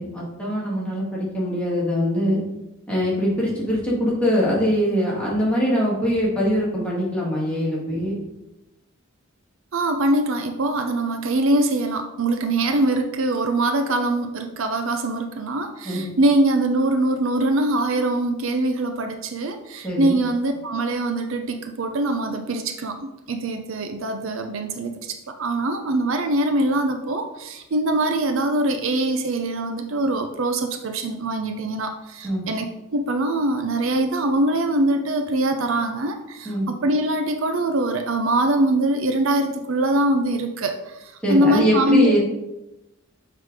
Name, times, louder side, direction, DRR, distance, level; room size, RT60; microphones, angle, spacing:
voice 1, 0.0-2.4 2.9-8.2 15.8-16.1 19.8-20.2 32.2-32.4 36.4-36.7 41.2-42.2, equal, 5° left, -6 dB, 2.2 m, -22 dB
voice 2, 9.7-32.7 32.9-42.2, right 1 dB, 65° right, 6 dB, 0.6 m, -23 dB
6.4 x 3.9 x 4.8 m, 0.94 s
head